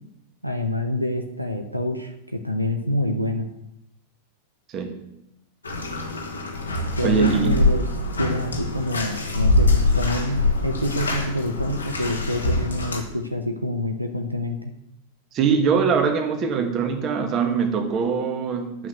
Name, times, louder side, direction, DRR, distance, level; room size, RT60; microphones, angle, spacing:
voice 1, 0.4-3.4 6.7-7.8 8.2-14.7, left 1 dB, 90° right, 5 dB, 0.9 m, -27 dB
Bathtub (filling or washing), 5.6-13.0, left 2 dB, 75° left, 1.8 m, -24 dB
voice 2, 7.0-7.6 15.3-18.9, right 6 dB, 35° right, 6 dB, 1.8 m, -22 dB
11.0 x 5.9 x 8.0 m, 0.82 s
figure-of-eight pair, 90°, 0 cm